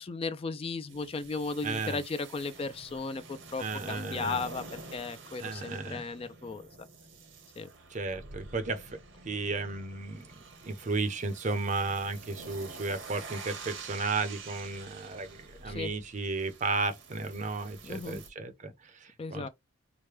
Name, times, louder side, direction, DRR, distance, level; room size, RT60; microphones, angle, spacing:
voice 1, 0.0-6.7 7.6-7.7 15.7-15.9 17.8-18.2 19.2-19.5, left 4 dB, 30° left, 0.3 m, -36 dB
sound 1, 0.9-18.3, right 4 dB, 60° right, 0.9 m, -48 dB
voice 2, 1.6-2.0 3.6-4.4 5.4-6.0 7.9-8.9 9.2-10.3 10.6-18.7 19.0-19.5, right 3 dB, 35° right, 0.6 m, -34 dB
4.7 x 2.1 x 3.2 m
head